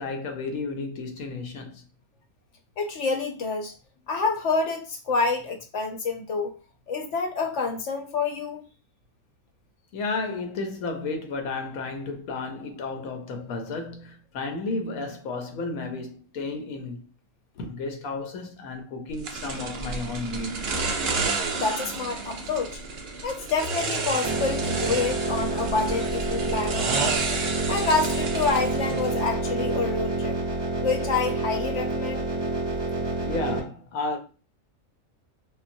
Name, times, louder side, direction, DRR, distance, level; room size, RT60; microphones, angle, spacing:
voice 1, 0.0-1.8 9.9-17.1 17.5-20.6 33.2-34.2, left 3 dB, 85° left, 1.1 m, -32 dB
voice 2, 2.8-3.7 4.1-6.6 6.9-8.6 21.5-22.8 23.2-27.2 27.7-30.4 30.8-32.2, left 4 dB, 65° left, 0.9 m, -28 dB
sound 1, 19.2-29.3, right 4 dB, 55° right, 0.8 m, -31 dB
sound 2, 24.2-33.6, right 2 dB, 40° right, 0.3 m, -28 dB
3.8 x 2.0 x 2.5 m
omnidirectional pair, 1.4 m